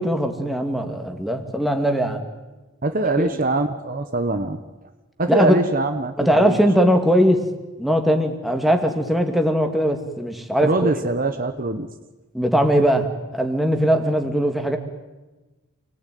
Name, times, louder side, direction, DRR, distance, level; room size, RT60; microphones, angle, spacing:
voice 1, 0.0-2.2 3.2-3.4 5.3-5.6 6.2-7.4 7.8-10.9 12.3-13.1 13.3-14.8, equal, ahead, 4 dB, 2.5 m, -20 dB
voice 2, 2.8-4.6 5.2-6.6 10.6-11.9, right 2 dB, 40° right, 7 dB, 1.3 m, -23 dB
29.0 x 20.0 x 9.4 m, 1.1 s
head